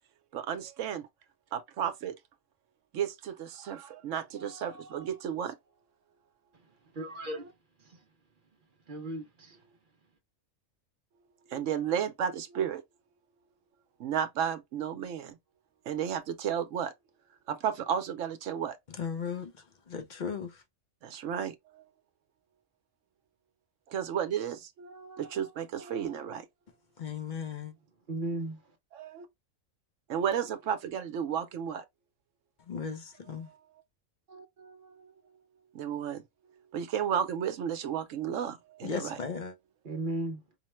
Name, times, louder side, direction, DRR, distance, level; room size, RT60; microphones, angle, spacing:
voice 1, 0.3-1.1 1.5-2.1 2.9-5.6 11.5-12.8 14.0-15.4 15.9-16.9 17.5-18.8 21.0-21.9 23.9-26.5 28.9-29.3 30.1-31.8 33.4-33.6 34.3-35.4 35.7-36.2 36.5-39.2, right 8 dB, 70° right, 1.0 m, -33 dB
voice 2, 6.9-7.4 7.8-8.0 8.9-9.6 28.1-28.6 39.8-40.4, right 1 dB, 50° right, 0.7 m, -35 dB
voice 3, 18.9-19.5 19.9-20.6 27.0-27.7 32.7-33.5 38.8-39.5, left 6 dB, 50° left, 0.6 m, -36 dB
4.9 x 2.1 x 3.0 m
omnidirectional pair, 1.4 m